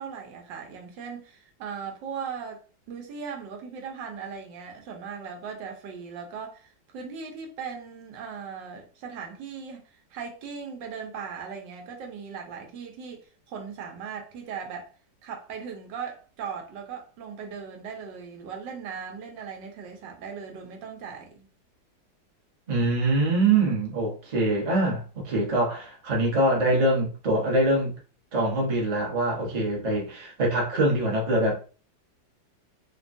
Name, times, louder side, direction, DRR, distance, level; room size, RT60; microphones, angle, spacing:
voice 1, 0.0-14.9 15.2-21.5, right 6 dB, 85° right, 1.4 m, -38 dB
voice 2, 22.7-27.9 28.3-31.6, right 2 dB, 35° right, 0.7 m, -24 dB
3.3 x 2.2 x 2.5 m
omnidirectional pair, 1.9 m